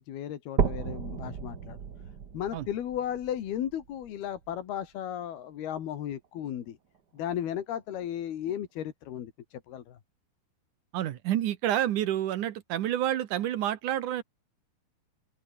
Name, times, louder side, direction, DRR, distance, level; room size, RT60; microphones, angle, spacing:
voice 1, 0.0-1.8 2.3-6.8 7.1-10.0, left 10 dB, 85° left, 4.0 m, -35 dB
sound 1, 0.6-4.6 5.1-5.2 5.8-5.9 6.2-6.3 7.2-7.3, right 7 dB, 50° right, 1.2 m, -34 dB
voice 2, 10.9-14.2, right 12 dB, 65° right, 2.3 m, -29 dB
open air
omnidirectional pair, 4.4 m